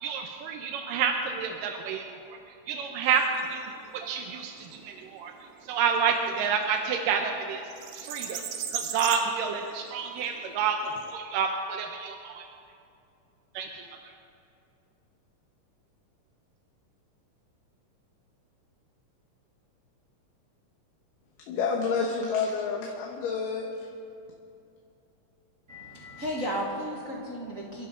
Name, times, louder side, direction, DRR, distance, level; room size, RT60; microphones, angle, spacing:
voice 1, 0.0-2.2 2.7-3.2 3.5-3.7 3.9-5.3 5.7-7.6 7.9-8.4 8.7-10.8 11.1-12.5 13.6-13.8, right 6 dB, 90° right, 3 dB, 2.5 m, -29 dB
sound 1, 3.0-11.1, right 8 dB, 65° right, 2.1 m, -40 dB
voice 2, 21.5-23.7, left 5 dB, 90° left, 0 dB, 2.9 m, -29 dB
voice 3, 25.7-27.9, equal, 40° right, -3 dB, 1.3 m, -34 dB
29.5 x 11.5 x 3.8 m, 2.6 s
omnidirectional pair, 3.7 m